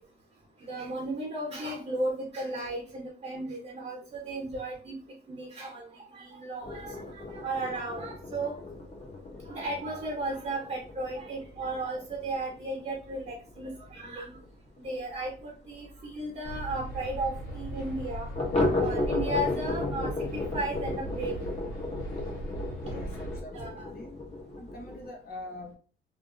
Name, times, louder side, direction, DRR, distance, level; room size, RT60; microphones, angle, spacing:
voice 1, 0.6-4.9 5.3-8.5 9.4-14.4 14.8-18.3 18.8-21.4 23.5-23.9, right 2 dB, 35° right, -1 dB, 1.0 m, -35 dB
sound 1, 6.6-15.9 16.2-16.3 16.6-16.7 17.1-17.2 18.3-25.1, left 2 dB, 35° left, 1.0 m, -34 dB
sound 2, 16.4-23.4, right 2 dB, 85° left, 1.1 m, -38 dB
voice 2, 22.8-24.2 24.6-25.7, left 1 dB, 50° left, 3 dB, 0.9 m, -44 dB
2.7 x 2.5 x 2.5 m, 0.39 s
cardioid pair, 90°, 20 cm